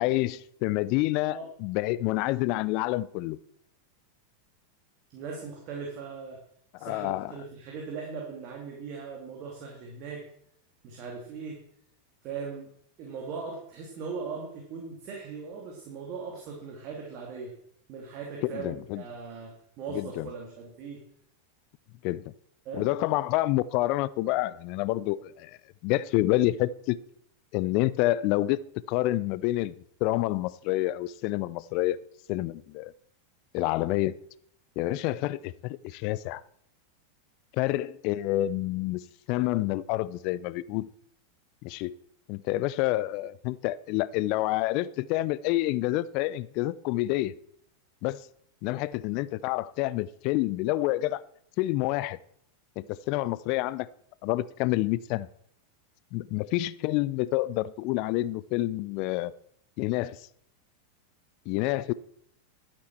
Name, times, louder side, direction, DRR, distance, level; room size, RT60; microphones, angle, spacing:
voice 1, 0.0-3.4 6.8-7.3 18.4-19.0 19.9-20.3 22.0-22.2 22.7-25.6 25.8-27.0 27.5-29.7 30.0-32.0 32.3-32.9 33.5-34.2 34.8-36.4 37.5-40.9 41.6-41.9 42.3-47.3 48.0-48.2 48.6-51.2 51.6-52.2 52.8-53.9 54.2-55.3 56.1-59.3 59.8-60.3 61.5-61.9, left 17 dB, 50° left, 0.5 m, -28 dB
voice 2, 5.1-6.4 6.8-10.2 10.8-11.6 12.2-12.7 13.0-17.5 17.9-21.0 22.6-22.9, right 5 dB, 45° right, 2.8 m, -39 dB
12.0 x 9.7 x 4.5 m
figure-of-eight pair, 90°, 0 cm